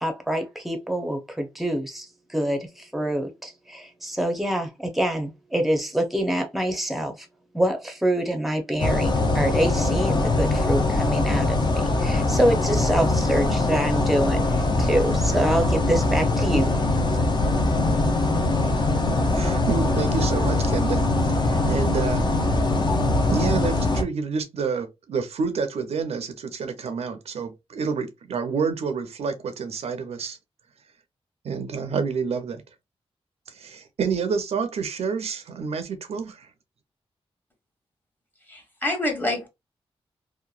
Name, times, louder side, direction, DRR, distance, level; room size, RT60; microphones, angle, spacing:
voice 1, 0.0-7.3 7.5-16.7, right 1 dB, ahead, 0.6 m, -26 dB
sound 1, 8.8-24.0, left 2 dB, 45° left, 0.6 m, -22 dB
voice 2, 19.3-21.0 21.4-22.2 23.2-30.4 31.4-32.6 33.5-36.5, right 5 dB, 75° right, 0.5 m, -28 dB
voice 3, 38.5-39.5, left 1 dB, 20° left, 1.1 m, -27 dB
2.8 x 2.1 x 2.3 m
wide cardioid pair, 90°, 11 cm